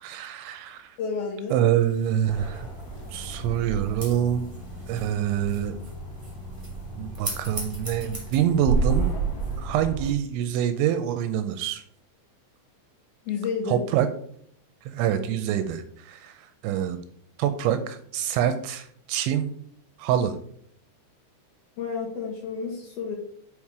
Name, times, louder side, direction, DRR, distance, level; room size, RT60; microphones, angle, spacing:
voice 1, 0.0-1.0 1.5-2.7 3.1-4.5 4.9-5.7 7.0-9.1 9.6-11.8 13.7-14.1 14.9-17.0 17.4-19.5 20.0-20.3, right 10 dB, 85° right, 9 dB, 2.8 m, -26 dB
voice 2, 1.0-1.6 13.3-13.8 21.8-23.2, left 5 dB, 70° left, 0 dB, 2.6 m, -30 dB
sound 1, 1.5-9.7, right 1 dB, 25° right, 1.1 m, -42 dB
sound 2, 2.2-10.1, right 3 dB, 35° left, 1.7 m, -32 dB
7.3 x 5.0 x 4.7 m, 0.64 s
omnidirectional pair, 5.6 m